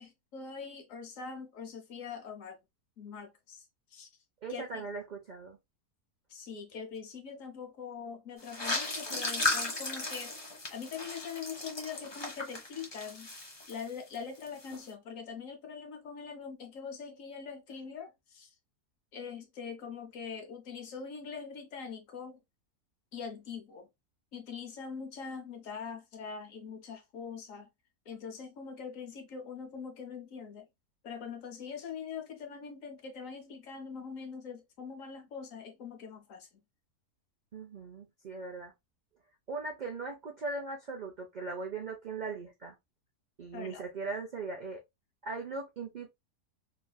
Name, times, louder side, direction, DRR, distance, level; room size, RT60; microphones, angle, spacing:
voice 1, 0.0-2.6 3.0-3.6 3.9-4.1 4.5-4.8 6.3-10.3 10.7-13.3 13.7-18.5 19.1-22.4 23.1-23.9 24.3-27.7 28.1-30.7 31.0-36.5 43.5-43.8, left 6 dB, 60° left, 1.0 m, -43 dB
voice 2, 4.4-5.6 37.5-38.7 39.5-42.8 43.4-44.8 45.2-46.1, right 3 dB, 75° right, 0.4 m, -39 dB
sound 1, 8.4-14.2 14.4-14.8, left 2 dB, 40° left, 0.3 m, -36 dB
3.2 x 2.5 x 2.2 m
omnidirectional pair, 1.7 m